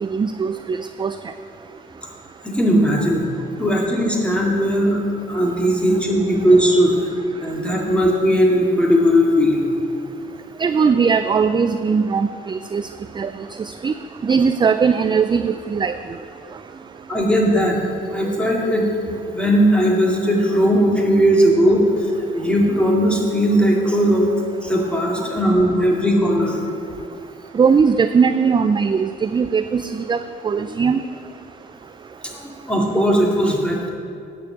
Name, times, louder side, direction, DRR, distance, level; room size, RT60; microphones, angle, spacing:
voice 1, 0.0-1.1 10.6-12.9 13.2-13.3 13.6-13.9 14.2-15.9 27.5-30.2 30.4-31.0, right 5 dB, 25° right, 10 dB, 0.4 m, -19 dB
voice 2, 2.4-3.3 3.6-5.0 5.3-6.9 7.4-9.7 17.1-17.8 18.1-18.9 19.3-24.3 24.6-26.6 32.2-33.9, equal, 5° left, -2 dB, 2.4 m, -18 dB
9.2 x 7.1 x 7.8 m, 2.5 s
cardioid pair, 90°, 20 cm